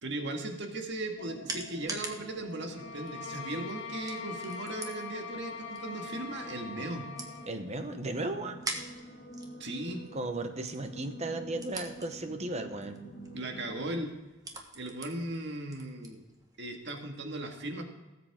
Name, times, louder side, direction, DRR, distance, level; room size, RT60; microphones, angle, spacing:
voice 1, 0.0-7.0 9.6-10.0 13.3-14.1 14.7-16.2 16.6-17.8, right 2 dB, 60° right, 3 dB, 1.7 m, -37 dB
sound 1, 0.6-17.0, right 2 dB, 20° right, 1.3 m, -46 dB
sound 2, 1.2-13.7, equal, 55° left, 1.9 m, -48 dB
sound 3, 2.7-7.6, left 5 dB, 75° left, 1.4 m, -42 dB
voice 2, 7.5-8.7 10.1-13.0, right 2 dB, 35° right, 7 dB, 0.9 m, -36 dB
18.0 x 7.8 x 3.6 m, 1.1 s
head